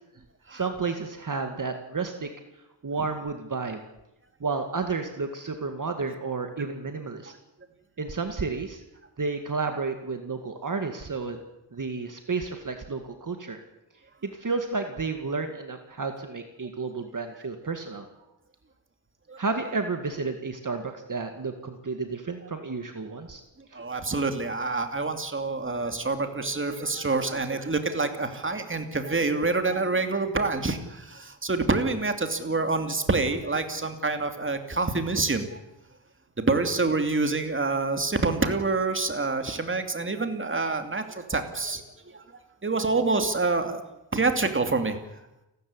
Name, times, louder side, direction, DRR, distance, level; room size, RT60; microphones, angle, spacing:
voice 1, 0.5-2.3 2.8-3.8 4.4-7.3 8.0-8.8 9.2-11.4 11.7-13.6 14.2-18.1 19.4-23.4 23.7-23.8, right 4 dB, 45° right, 6 dB, 2.2 m, -31 dB
voice 2, 23.7-35.6 36.4-42.2 42.6-43.8 44.1-45.0, right 3 dB, 25° right, 7 dB, 2.6 m, -27 dB
29.5 x 13.5 x 9.8 m, 0.93 s
wide cardioid pair, 140°, 44 cm